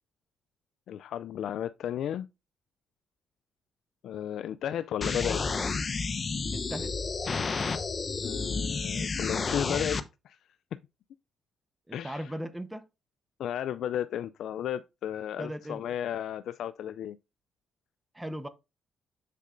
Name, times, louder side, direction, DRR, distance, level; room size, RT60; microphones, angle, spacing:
voice 1, 0.9-2.3 4.0-5.4 8.2-10.4 11.9-12.3 13.4-17.2, left 10 dB, 75° left, 0.3 m, -34 dB
sound 1, 5.0-10.0, left 4 dB, 35° left, 0.8 m, -31 dB
voice 2, 6.5-6.9 11.9-12.8 15.4-15.8 18.1-18.5, equal, 10° right, 0.9 m, -37 dB
7.5 x 6.6 x 2.5 m
cardioid pair, 90°, 0 cm